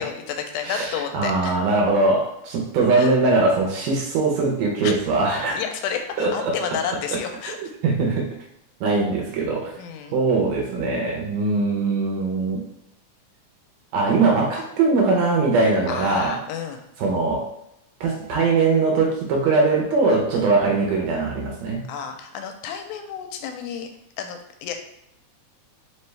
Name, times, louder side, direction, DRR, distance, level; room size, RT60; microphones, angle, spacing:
voice 1, 0.0-1.6 3.0-3.1 4.8-4.9 5.5-7.6 9.8-10.2 15.9-16.8 20.3-20.5 21.9-23.9 24.2-24.7, left 7 dB, 85° left, 5 dB, 2.0 m, -31 dB
voice 2, 0.6-5.6 6.2-6.6 7.6-8.3 8.8-9.8 10.1-12.6 13.9-16.4 17.0-17.5 18.0-21.9, right 3 dB, 75° right, 0 dB, 1.8 m, -21 dB
4.6 x 3.4 x 3.2 m, 0.81 s
omnidirectional pair, 3.5 m